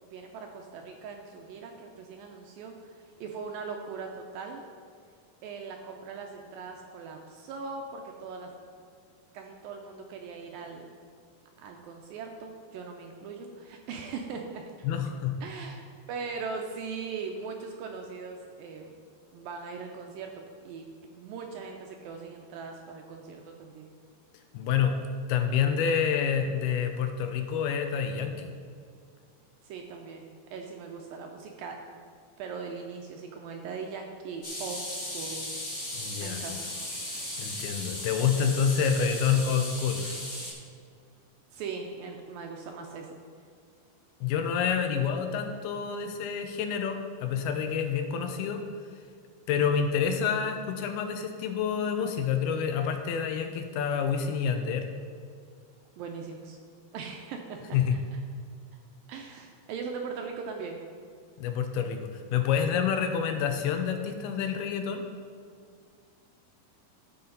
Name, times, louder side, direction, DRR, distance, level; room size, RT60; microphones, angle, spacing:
voice 1, 0.0-4.6 5.4-8.5 9.3-10.9 11.6-14.6 15.4-15.8 16.1-18.9 19.3-20.9 21.1-23.9 29.6-32.0 32.4-35.5 36.2-36.6 41.5-43.2 56.0-56.6 56.9-58.0 59.1-60.8, right 5 dB, 80° right, 2 dB, 2.1 m, -40 dB
voice 2, 14.8-15.4 24.5-24.9 25.3-28.5 36.0-36.6 37.4-40.0 44.2-48.6 49.5-54.9 57.7-58.0 61.4-65.0, left 7 dB, 80° left, 6 dB, 2.5 m, -28 dB
sound 1, 34.4-40.5, left 1 dB, 20° left, 1.5 m, -37 dB
15.5 x 5.8 x 3.9 m, 2.2 s
omnidirectional pair, 4.6 m